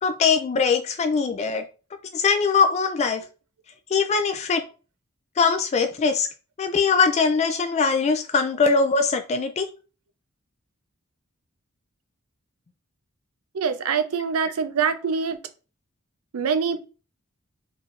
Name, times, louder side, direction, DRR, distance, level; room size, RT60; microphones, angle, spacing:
voice 1, 0.0-1.6 2.1-3.2 3.9-4.6 5.4-6.3 6.6-9.7, left 5 dB, 30° left, 0.3 m, -21 dB
voice 2, 13.5-15.4 16.3-16.8, right 6 dB, 85° right, 0.5 m, -24 dB
4.5 x 3.2 x 2.4 m
head